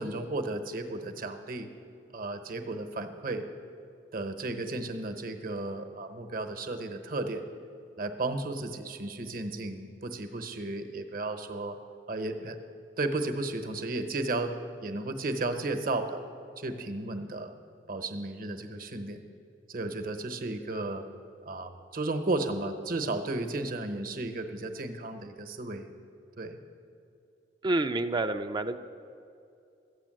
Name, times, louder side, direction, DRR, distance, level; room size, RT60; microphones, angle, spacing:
voice 1, 0.0-1.7 2.1-3.4 4.1-7.4 8.0-11.8 12.1-12.6 13.0-14.5 14.8-16.2 16.6-17.5 17.9-19.2 19.7-21.0 21.5-25.9 26.4-26.6, right 2 dB, 55° right, 7 dB, 0.9 m, -34 dB
voice 2, 27.6-28.8, right 2 dB, 25° right, 8 dB, 0.4 m, -28 dB
13.0 x 8.9 x 7.6 m, 2.6 s
head